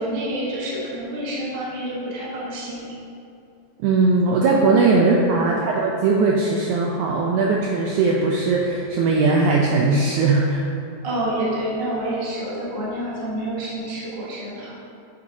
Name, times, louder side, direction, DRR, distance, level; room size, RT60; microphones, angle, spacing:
voice 1, 0.0-2.9 4.8-5.0 5.2-5.5 11.0-14.7, right 1 dB, 50° right, -7 dB, 0.6 m, -28 dB
voice 2, 3.8-10.6, right 3 dB, 85° right, -2 dB, 1.7 m, -19 dB
8.3 x 6.8 x 2.7 m, 2.6 s
omnidirectional pair, 4.0 m